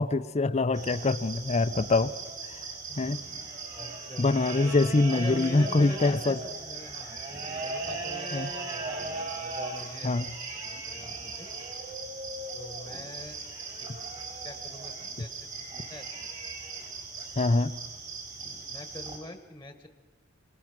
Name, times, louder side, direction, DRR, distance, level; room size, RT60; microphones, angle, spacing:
voice 1, 0.0-2.1 2.4-2.7 3.0-3.2 4.2-6.4 8.3-8.5 10.0-10.3 17.4-17.7, left 3 dB, 35° left, 14 dB, 0.6 m, -24 dB
sound 1, 0.7-19.2, right 3 dB, 40° right, 5.3 m, -38 dB
voice 2, 3.7-4.3 4.6-7.1 7.6-9.0 9.3-10.1 10.6-11.5 12.5-13.4 13.8-13.9 14.4-15.3 15.6-16.3 17.4-17.5 18.7-19.9, left 1 dB, 10° left, 7 dB, 1.3 m, -44 dB
25.5 x 19.0 x 6.1 m, 1.3 s
head